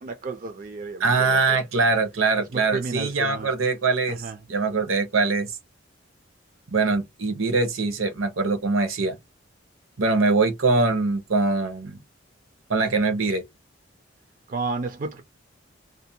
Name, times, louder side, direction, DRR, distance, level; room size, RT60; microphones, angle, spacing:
voice 1, 0.0-1.6 2.5-3.5 4.1-4.4 14.5-15.2, right 3 dB, 40° right, 0.4 m, -32 dB
voice 2, 1.0-5.5 6.7-9.2 10.0-12.0 12.7-13.4, right 3 dB, 85° right, 0.8 m, -23 dB
2.6 x 2.1 x 2.6 m
head